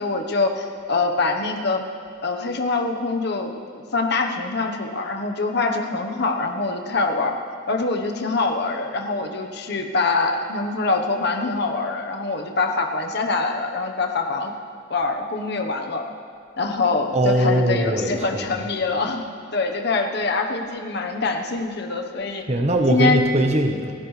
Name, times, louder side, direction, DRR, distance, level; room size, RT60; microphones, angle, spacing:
voice 1, 0.0-1.8 2.2-7.4 7.7-14.5 14.9-16.0 16.6-22.5 22.9-23.2, left 3 dB, 55° left, 4 dB, 1.1 m, -24 dB
voice 2, 17.1-18.6 22.5-23.9, right 1 dB, 35° right, 4 dB, 1.1 m, -21 dB
30.0 x 11.0 x 3.3 m, 2.2 s
head